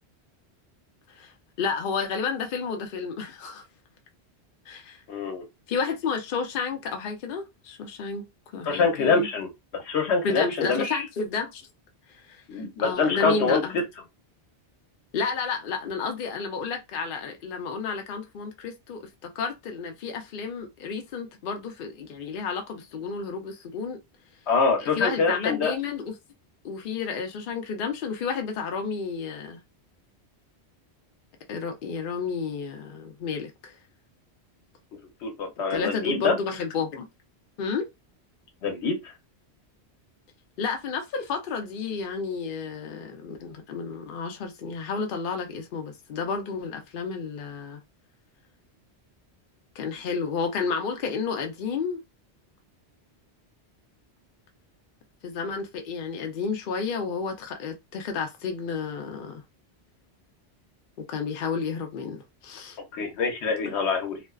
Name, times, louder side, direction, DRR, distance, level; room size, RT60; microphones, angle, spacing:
voice 1, 1.6-3.6 4.7-5.0 5.7-8.2 8.5-9.3 10.2-11.6 12.3-13.8 15.1-19.1 19.4-24.0 25.0-26.1 26.6-29.6 31.5-33.7 35.7-37.1 37.6-37.9 40.6-47.8 49.8-52.0 55.2-59.4 61.0-62.8 63.6-63.7, left 5 dB, 60° left, 0.7 m, -31 dB
voice 2, 5.1-5.4 8.7-9.5 9.8-11.0 12.5-13.8 24.5-25.7 35.2-36.4 38.6-39.0 62.9-64.2, left 4 dB, 85° left, 1.0 m, -25 dB
2.5 x 2.2 x 2.3 m
omnidirectional pair, 1.1 m